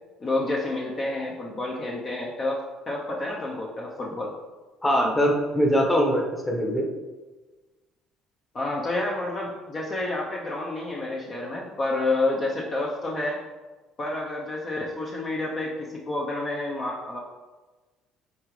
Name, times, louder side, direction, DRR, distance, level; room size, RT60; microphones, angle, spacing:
voice 1, 0.2-4.3 8.5-13.4 14.0-17.2, left 2 dB, 30° left, -2 dB, 0.9 m, -29 dB
voice 2, 4.8-6.8, equal, 10° left, 0 dB, 1.1 m, -22 dB
8.4 x 3.8 x 3.3 m, 1.3 s
cardioid pair, 120°, 0 cm